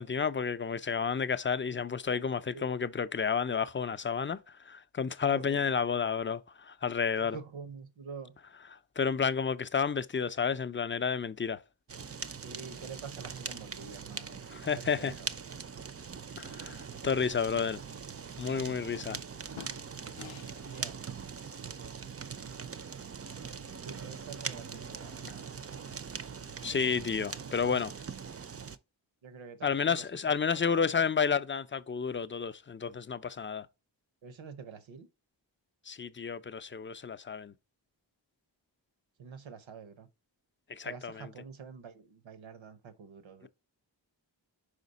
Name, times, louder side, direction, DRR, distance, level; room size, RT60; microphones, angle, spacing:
voice 1, 0.0-7.4 9.0-11.6 14.5-15.1 16.4-17.8 18.4-19.2 25.2-25.3 26.6-27.9 29.6-33.7 35.9-37.5 40.7-41.3, left 6 dB, 25° left, 0.4 m, -31 dB
voice 2, 5.2-5.7 7.2-8.4 12.4-14.5 14.7-15.3 19.1-19.2 20.7-21.0 23.8-25.4 27.5-27.6 29.2-30.0 30.5-31.0 34.2-35.1 39.2-40.1 40.8-43.5, right 6 dB, 85° right, 0.9 m, -47 dB
Fire, 11.9-28.8, right 6 dB, 35° right, 0.5 m, -42 dB
sound 1, 19.1-19.2 19.5-20.9, left 11 dB, 85° left, 0.5 m, -49 dB
5.1 x 4.8 x 4.0 m
cardioid pair, 60°, 45 cm